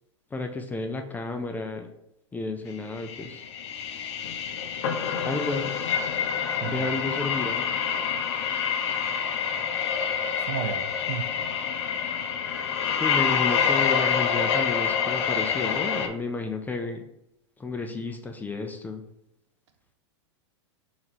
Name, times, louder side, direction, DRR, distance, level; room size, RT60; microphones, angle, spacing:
voice 1, 0.3-1.9 2.3-3.4 5.2-5.7 6.6-7.7 13.0-17.0 17.6-19.0, left 3 dB, 10° left, 0.4 m, -32 dB
sound 1, 2.9-16.1, left 7 dB, 65° left, 0.5 m, -27 dB
voice 2, 10.4-11.3, right 6 dB, 60° right, 0.6 m, -33 dB
3.2 x 2.9 x 4.0 m
hypercardioid pair, 105°, 16 cm